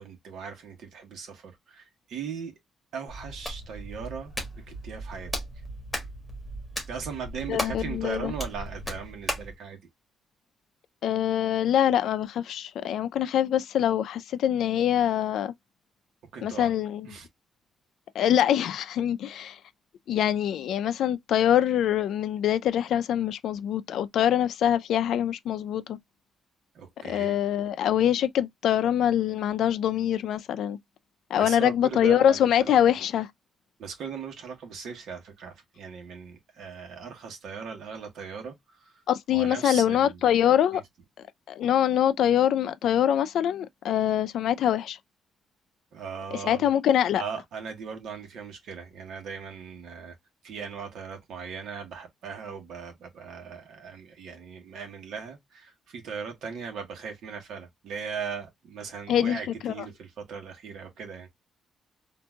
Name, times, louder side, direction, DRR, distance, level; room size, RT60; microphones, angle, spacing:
voice 1, 0.0-2.5 2.9-5.3 6.9-9.8 16.3-16.7 17.0-17.3 26.7-27.4 31.3-32.7 33.8-38.9 39.3-40.2 40.7-40.8 45.9-46.7 47.1-50.2 50.4-61.3, right 6 dB, 65° right, 1.3 m, -38 dB
Hands, 3.1-9.6, equal, ahead, 1.5 m, -36 dB
voice 2, 7.5-8.3 11.0-15.5 16.4-17.1 18.1-19.6 20.1-26.0 27.0-30.8 31.3-33.3 39.1-40.8 41.5-45.0 46.4-47.2 59.1-59.7, left 10 dB, 70° left, 0.4 m, -24 dB
3.9 x 2.6 x 2.3 m
cardioid pair, 175°, 0 cm